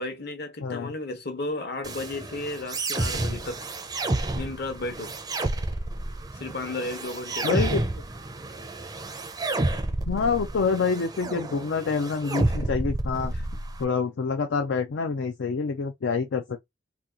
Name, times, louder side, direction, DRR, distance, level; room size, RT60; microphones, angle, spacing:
voice 1, 0.0-3.7 4.3-5.1 6.3-7.7 13.3-13.4, left 2 dB, 60° left, 1.0 m, -34 dB
voice 2, 0.6-0.9 7.4-7.8 10.1-13.3 13.8-16.6, left 5 dB, 75° left, 0.4 m, -27 dB
sound 1, 1.8-13.8, right 2 dB, 20° right, 0.4 m, -30 dB
2.8 x 2.3 x 3.7 m
head